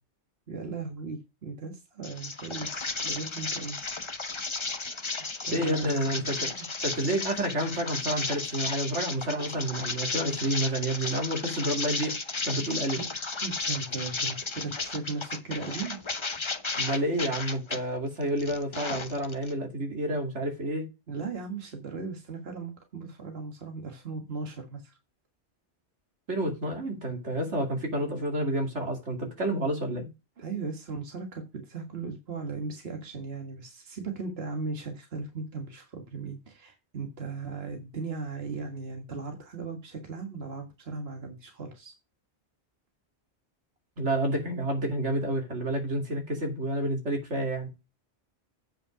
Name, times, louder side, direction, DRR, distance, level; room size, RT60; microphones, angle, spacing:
voice 1, 0.5-2.7 3.0-3.8 5.4-6.5 13.0-13.1 13.4-16.0 21.1-25.0 29.1-29.3 30.4-41.9, right 4 dB, 60° right, 1.9 m, -37 dB
sound 1, 2.0-17.8 18.2-19.5, left 3 dB, 30° left, 0.9 m, -34 dB
voice 2, 5.5-6.5 6.8-12.2 12.4-13.0 16.8-20.8 26.3-30.1 44.0-47.7, right 1 dB, 85° right, 2.9 m, -29 dB
8.9 x 5.5 x 4.9 m
omnidirectional pair, 1.2 m